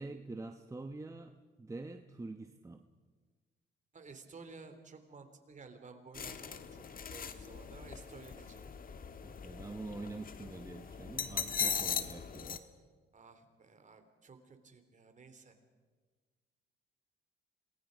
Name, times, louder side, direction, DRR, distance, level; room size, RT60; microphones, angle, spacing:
voice 1, 0.0-2.8 9.2-12.6, right 3 dB, 15° right, 6 dB, 1.0 m, -45 dB
voice 2, 3.9-8.6 11.9-12.1 13.1-15.5, right 4 dB, 40° right, 7 dB, 3.0 m, -54 dB
sound 1, 6.1-12.6, left 6 dB, 45° left, 1.5 m, -39 dB
28.0 x 19.5 x 5.2 m, 1.5 s
cardioid pair, 90°, 20 cm